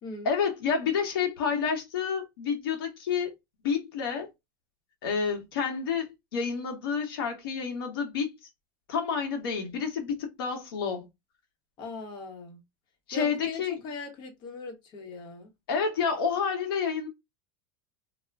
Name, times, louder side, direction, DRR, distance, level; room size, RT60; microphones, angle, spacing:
voice 1, 0.2-3.3 3.6-4.3 5.0-8.3 8.9-11.1 13.1-13.8 15.7-17.1, left 6 dB, 80° left, 0.9 m, -29 dB
voice 2, 11.8-12.6 13.1-15.5, left 3 dB, 40° left, 0.9 m, -40 dB
2.4 x 2.1 x 3.3 m
supercardioid pair, 130°, 12 cm